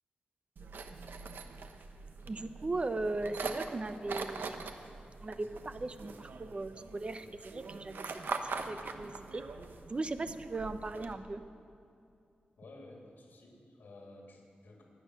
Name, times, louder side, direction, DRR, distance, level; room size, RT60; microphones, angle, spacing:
sound 1, 0.6-11.1, right 4 dB, 90° right, 1.0 m, -43 dB
voice 1, 2.3-4.8 5.2-8.1 8.7-9.4 9.9-11.4, right 2 dB, 35° right, 10 dB, 0.8 m, -38 dB
voice 2, 12.6-14.8, left 2 dB, 75° left, -1 dB, 3.2 m, -53 dB
23.5 x 8.8 x 6.5 m, 2.7 s
wide cardioid pair, 110°, 3 cm